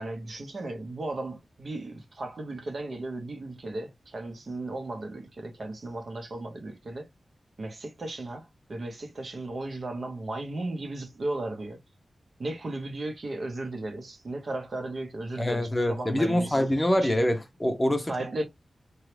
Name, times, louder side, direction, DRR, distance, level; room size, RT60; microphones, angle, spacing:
voice 1, 0.0-7.1 7.6-11.8 12.4-16.6 17.0-17.1 18.1-18.4, right 2 dB, 55° right, 0.8 m, -35 dB
voice 2, 15.4-18.1, left 1 dB, 15° left, 0.6 m, -25 dB
2.9 x 2.3 x 3.2 m
wide cardioid pair, 110°, 0 cm